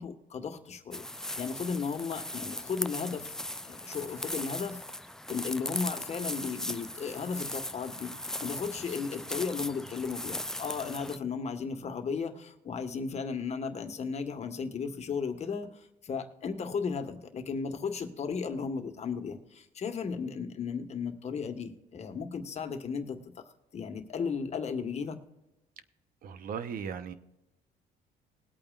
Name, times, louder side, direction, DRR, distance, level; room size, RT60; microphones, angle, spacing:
voice 1, 0.0-3.4 3.6-4.8 5.3-8.1 8.4-23.2 23.7-25.2, left 5 dB, 40° left, 6 dB, 1.5 m, -35 dB
sound 1, 0.9-11.2, left 1 dB, 5° left, 0.4 m, -38 dB
voice 2, 26.2-27.1, right 7 dB, 60° right, 12 dB, 0.9 m, -37 dB
20.5 x 8.7 x 2.5 m, 0.94 s
cardioid pair, 110°, 17 cm